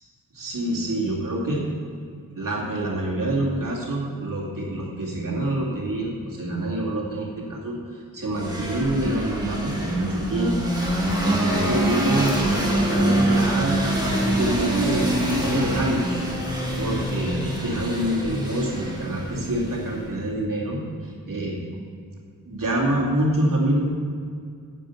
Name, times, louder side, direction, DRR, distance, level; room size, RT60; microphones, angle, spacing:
voice 1, 0.3-1.6 2.3-10.6 10.9-16.2 16.8-21.6 22.5-23.8, right 1 dB, 70° right, -3 dB, 2.5 m, -26 dB
sound 1, 8.4-20.1, right 1 dB, 10° right, 2.0 m, -25 dB
10.0 x 8.4 x 5.6 m, 2.2 s
wide cardioid pair, 120°, 34 cm